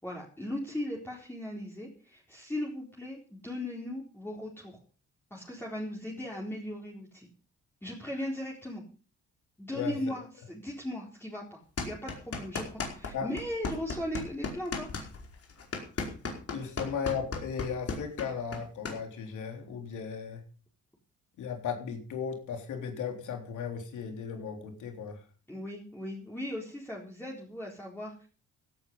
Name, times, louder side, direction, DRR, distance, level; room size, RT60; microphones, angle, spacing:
voice 1, 0.0-4.8 5.3-7.3 7.8-8.8 9.6-15.1 16.6-16.7 25.5-28.3, left 1 dB, 10° left, -3 dB, 4.3 m, -38 dB
sound 1, 11.8-13.1 13.4-19.0, left 4 dB, 50° left, 4.8 m, -35 dB
voice 2, 16.5-20.4 21.4-25.2, left 6 dB, 80° left, 4 dB, 3.6 m, -36 dB
16.5 x 10.0 x 5.5 m, 0.39 s
cardioid pair, 90°, 30 cm